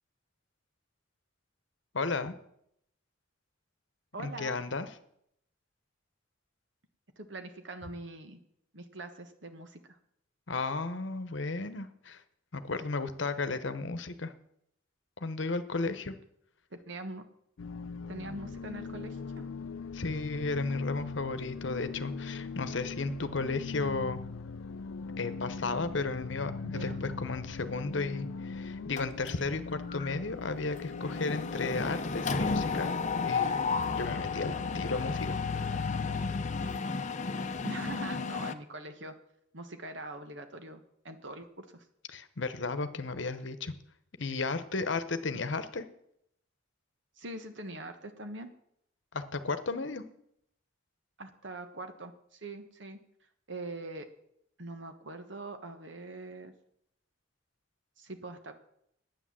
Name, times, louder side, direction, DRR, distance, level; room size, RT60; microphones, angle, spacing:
voice 1, 1.9-2.3 4.2-4.9 10.5-12.2 12.5-14.3 15.2-16.1 19.9-24.2 25.2-33.6 33.9-36.0 42.1-43.7 44.2-45.8 49.1-50.0, left 3 dB, 65° left, 11 dB, 1.0 m, -34 dB
voice 2, 4.1-4.6 7.2-8.4 8.7-10.0 16.7-17.2 18.1-19.5 26.6-27.0 37.6-39.1 39.5-41.8 45.3-45.5 47.2-48.5 51.2-53.0 53.5-54.1 54.6-56.5 58.0-58.5, right 2 dB, 65° right, 7 dB, 1.4 m, -43 dB
sound 1, 17.6-36.8, left 4 dB, 90° left, 0.4 m, -40 dB
Mechanisms, 29.0-29.6 29.9-30.1 30.4-38.5, left 4 dB, 35° left, 0.7 m, -33 dB
10.0 x 9.1 x 7.6 m, 0.73 s
head